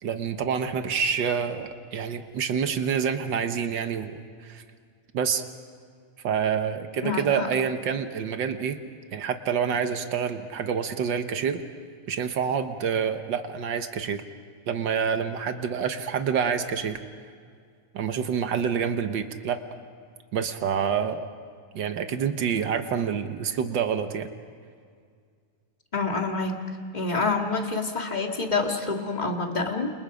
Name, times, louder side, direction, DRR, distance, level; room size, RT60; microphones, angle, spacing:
voice 1, 0.0-4.6 5.1-5.4 6.2-8.8 9.1-11.6 12.1-14.2 14.7-17.0 17.9-19.6 20.3-21.3 21.7-24.3, right 7 dB, 70° right, 7 dB, 1.1 m, -27 dB
voice 2, 7.0-7.5 25.9-26.6 26.9-29.9, left 3 dB, 20° left, 2 dB, 1.5 m, -27 dB
29.5 x 28.5 x 5.1 m, 2.1 s
omnidirectional pair, 3.6 m